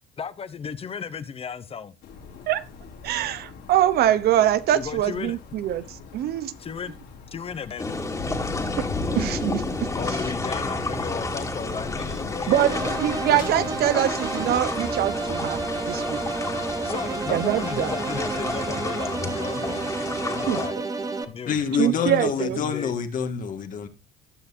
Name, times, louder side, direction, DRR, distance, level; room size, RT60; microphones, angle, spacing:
voice 1, 0.2-1.9 4.7-5.4 6.6-6.9 7.3-8.0 9.9-12.8 14.6-14.7 16.8-19.8 20.2-20.8 21.3-22.9, left 6 dB, 35° left, 0.9 m, -35 dB
sound 1, 2.0-18.8, left 4 dB, 85° left, 5.8 m, -40 dB
voice 2, 3.0-6.5 9.1-9.9 12.5-12.7 13.0-15.6 15.9-16.2 17.3-17.9 20.5-20.6 21.8-22.6, right 12 dB, 70° right, 0.9 m, -23 dB
sound 2, 7.8-20.7, left 2 dB, 20° left, 2.3 m, -31 dB
sound 3, 12.5-21.2, right 3 dB, 20° right, 1.3 m, -30 dB
voice 3, 21.5-23.9, left 6 dB, 50° left, 1.8 m, -26 dB
19.0 x 6.7 x 2.7 m
cardioid pair, 110°, 17 cm